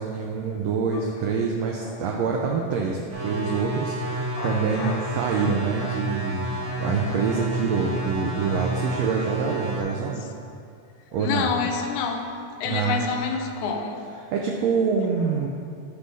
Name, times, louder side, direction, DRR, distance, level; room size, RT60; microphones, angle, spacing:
voice 1, 0.0-6.5 6.8-10.3 11.1-11.5 12.6-13.1 14.3-15.5, right 5 dB, 75° right, 0 dB, 1.6 m, -26 dB
sound 1, 3.1-9.8, right 1 dB, 50° right, 0.9 m, -30 dB
voice 2, 4.4-5.1 6.0-6.2 6.6-7.5 11.1-14.0, left 5 dB, 90° left, 4 dB, 2.1 m, -29 dB
9.7 x 3.4 x 5.3 m, 2.3 s
omnidirectional pair, 3.3 m